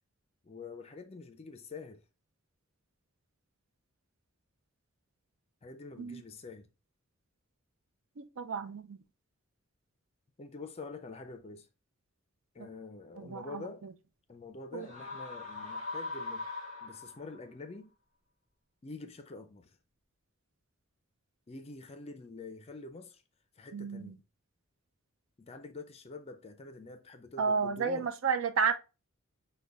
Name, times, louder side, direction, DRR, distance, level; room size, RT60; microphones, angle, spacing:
voice 1, 0.4-2.0 5.6-6.7 10.4-11.7 12.5-13.8 14.3-16.5 16.8-17.9 18.8-19.8 21.5-23.2 23.6-24.2 25.4-28.1, left 3 dB, 30° left, 0.4 m, -46 dB
voice 2, 8.2-9.0 13.2-13.7 14.7-14.9 23.7-24.2 27.4-28.7, right 5 dB, 70° right, 0.5 m, -32 dB
sound 1, 14.8-17.4, left 3 dB, 35° right, 2.3 m, -41 dB
5.2 x 2.2 x 3.3 m
head